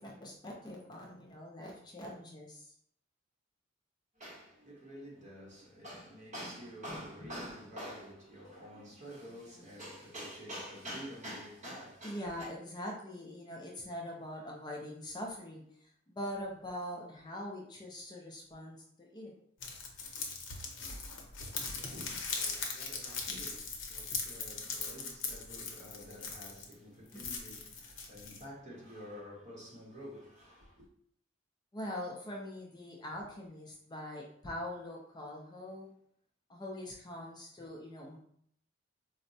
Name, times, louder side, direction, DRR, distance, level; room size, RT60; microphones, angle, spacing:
voice 1, 0.0-2.7 12.0-19.3 27.1-27.3 31.7-35.9 36.5-38.2, left 1 dB, 20° left, 0.4 m, -43 dB
voice 2, 4.1-12.5 21.7-30.9, equal, 40° right, 1.0 m, -48 dB
sound 1, 19.6-26.7 27.1-28.4, left 4 dB, 85° left, 0.6 m, -40 dB
4.3 x 2.0 x 2.6 m
head